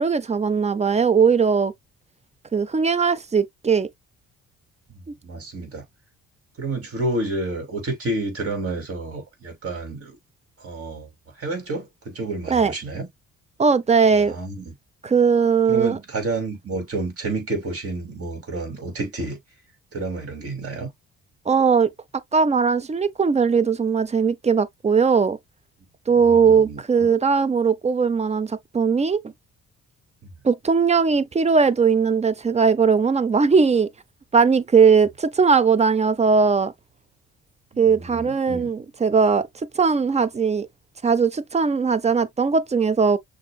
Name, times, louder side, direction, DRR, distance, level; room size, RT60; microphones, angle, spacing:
voice 1, 0.0-1.7 2.5-3.9 12.5-12.7 13.6-14.4 15.0-16.0 21.5-21.9 22.3-25.4 26.1-29.3 30.4-33.9 34.3-36.7 37.8-39.5 39.7-40.7 41.0-43.2, right 5 dB, 20° right, 0.5 m, -19 dB
voice 2, 4.9-5.8 6.6-10.2 10.6-11.1 11.4-13.1 14.1-14.7 15.7-19.4 19.9-20.9 26.1-27.1 30.2-30.3 37.7-38.7, right 2 dB, 50° right, 2.6 m, -30 dB
6.5 x 2.7 x 2.3 m
cardioid pair, 90°, 30 cm